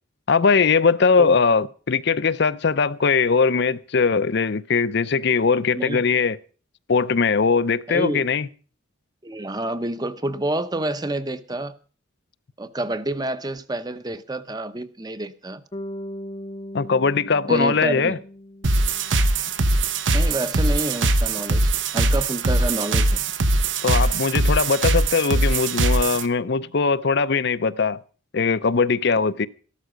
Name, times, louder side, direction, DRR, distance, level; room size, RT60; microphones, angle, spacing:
voice 1, 0.3-6.4 6.9-8.5 16.7-18.2 23.8-28.0 28.3-29.5, left 5 dB, 55° left, 0.6 m, -20 dB
voice 2, 7.9-8.2 9.2-11.7 12.6-15.6 17.5-18.2 20.1-23.2, right 1 dB, 20° right, 0.8 m, -28 dB
Bass guitar, 15.7-19.8, equal, 25° left, 0.7 m, -38 dB
sound 1, 18.6-26.2, right 2 dB, 65° right, 1.0 m, -21 dB
14.0 x 12.5 x 5.1 m
head